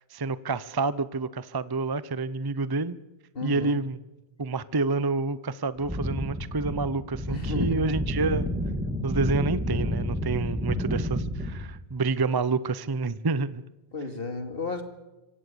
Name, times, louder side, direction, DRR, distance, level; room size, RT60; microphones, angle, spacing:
voice 1, 0.1-3.0 3.4-4.0 4.4-8.5 9.0-13.6, right 3 dB, 25° right, 17 dB, 0.6 m, -28 dB
voice 2, 3.3-3.8 7.3-7.8 13.9-14.8, left 3 dB, 60° left, 8 dB, 2.6 m, -32 dB
sound 1, 5.8-11.8, equal, 10° right, 2.3 m, -30 dB
25.5 x 16.5 x 6.8 m, 1.0 s
omnidirectional pair, 1.1 m